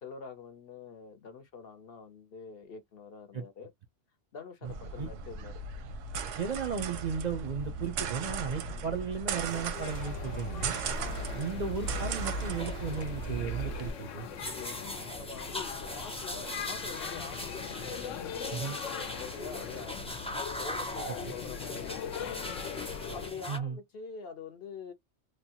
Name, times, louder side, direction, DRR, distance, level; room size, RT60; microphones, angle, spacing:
voice 1, 0.0-3.7 4.3-5.6 8.7-8.9 10.9-11.3 14.4-24.9, left 5 dB, 55° left, 0.8 m, -46 dB
voice 2, 4.6-5.1 6.4-10.8 11.3-14.3 18.5-18.8 21.2-21.3 23.5-23.8, right 6 dB, 50° right, 0.5 m, -35 dB
sound 1, 4.6-13.9, right 4 dB, 90° right, 1.0 m, -36 dB
sound 2, 9.4-23.3, left 8 dB, 85° left, 1.0 m, -41 dB
sound 3, 10.8-23.6, left 1 dB, 10° left, 0.3 m, -41 dB
3.2 x 2.2 x 2.8 m
omnidirectional pair, 1.3 m